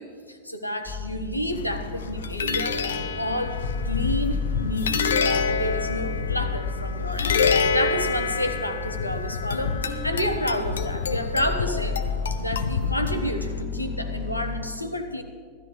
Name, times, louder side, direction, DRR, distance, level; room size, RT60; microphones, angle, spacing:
voice 1, 0.0-2.9 3.2-12.0 12.4-15.2, equal, 85° left, 7 dB, 1.1 m, -30 dB
sound 1, 0.8-14.6, left 5 dB, 25° left, 3.0 m, -33 dB
sound 2, 1.5-13.6, left 5 dB, 65° left, 0.8 m, -27 dB
17.0 x 13.5 x 5.0 m, 2.1 s
figure-of-eight pair, 90°, 0 cm